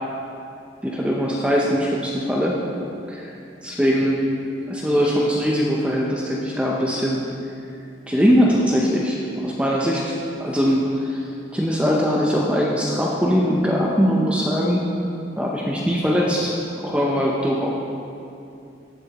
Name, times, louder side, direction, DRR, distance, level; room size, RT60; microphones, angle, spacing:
voice 1, 0.8-2.6 3.1-3.3 3.6-4.2 4.7-7.2 8.1-10.1 10.4-11.2 11.5-14.9 15.4-17.7, equal, 5° right, -3 dB, 0.6 m, -21 dB
14.5 x 6.7 x 2.9 m, 2.6 s
head